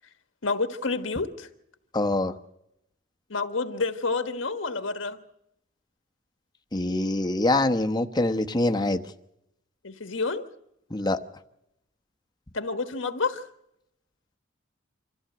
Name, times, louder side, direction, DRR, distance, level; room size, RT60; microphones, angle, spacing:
voice 1, 0.4-1.5 3.3-5.2 9.8-10.4 12.5-13.5, left 3 dB, 70° left, 8 dB, 1.4 m, -29 dB
voice 2, 1.9-2.4 6.7-9.0 10.9-11.2, left 2 dB, 20° left, 6 dB, 1.0 m, -24 dB
25.5 x 14.5 x 7.8 m, 0.81 s
head